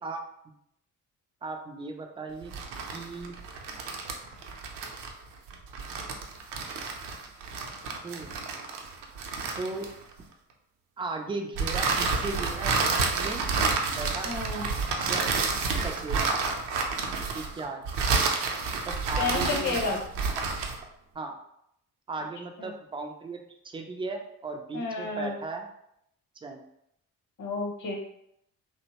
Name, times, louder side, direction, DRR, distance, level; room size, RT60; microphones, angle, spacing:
voice 1, 1.4-2.5 2.9-3.4 8.0-8.4 9.6-9.9 11.0-13.5 13.9-14.3 15.0-15.3 15.8-16.3 17.3-17.9 18.8-20.0 21.1-21.4 22.1-23.4 23.6-25.7 26.4-26.6, right 3 dB, 15° right, 3 dB, 0.3 m, -36 dB
sound 1, 2.4-10.2 11.6-20.8, right 4 dB, 60° right, 0.6 m, -30 dB
voice 2, 14.2-14.6 19.2-20.0 22.6-22.7 24.7-25.3 27.4-28.0, left 3 dB, 45° left, 1 dB, 0.8 m, -30 dB
2.7 x 2.1 x 2.8 m, 0.75 s
hypercardioid pair, 40°, 45 cm